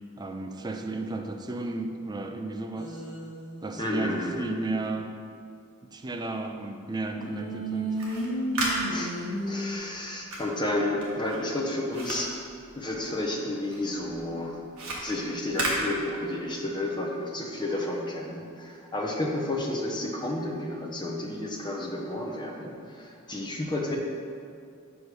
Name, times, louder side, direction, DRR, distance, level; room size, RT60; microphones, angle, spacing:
voice 1, 0.2-3.0 3.6-5.1 5.9-8.0, right 2 dB, 20° right, 5 dB, 0.4 m, -33 dB
sound 1, 2.8-4.3 7.1-9.8, right 1 dB, 75° left, 1.2 m, -33 dB
voice 2, 3.8-4.6 8.9-9.1 9.5-12.3 12.7-14.6 15.0-24.0, left 1 dB, 20° left, 0 dB, 0.8 m, -31 dB
sound 2, 7.9-13.3 13.7-16.6, right 1 dB, 65° right, 1.5 m, -35 dB
5.1 x 5.0 x 6.3 m, 2.3 s
head